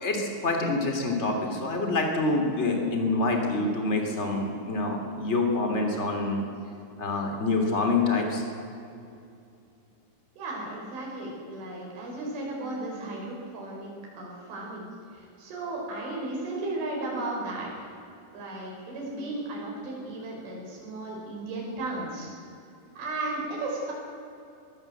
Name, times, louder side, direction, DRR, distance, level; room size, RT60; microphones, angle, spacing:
voice 1, 0.0-6.4 7.0-8.4, left 3 dB, 20° left, 3 dB, 2.4 m, -26 dB
voice 2, 10.4-14.9 15.1-17.9 18.3-22.3 23.0-23.9, right 2 dB, 80° right, -2 dB, 7.2 m, -35 dB
22.5 x 16.5 x 7.9 m, 2.6 s
omnidirectional pair, 5.4 m